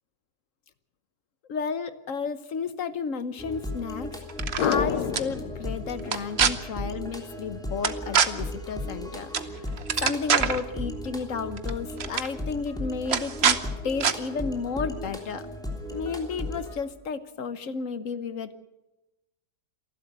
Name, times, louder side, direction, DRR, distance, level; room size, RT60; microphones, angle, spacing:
voice 1, 1.5-4.1 4.6-9.6 10.0-15.5 15.9-18.6, left 5 dB, 60° left, 12 dB, 1.4 m, -32 dB
sound 1, 3.4-16.8, left 1 dB, ahead, 3.1 m, -36 dB
sound 2, 4.3-4.8 5.1-5.2 6.0-6.5 7.8-8.3 9.3-9.5 9.8-10.6 11.6-11.7 12.0-12.3 13.1-13.6 14.0-14.1, right 7 dB, 50° right, 1.1 m, -23 dB
sound 3, 4.6-7.1 7.3-7.4, left 8 dB, 80° left, 1.5 m, -30 dB
28.0 x 12.0 x 8.0 m, 1.0 s
omnidirectional pair, 1.6 m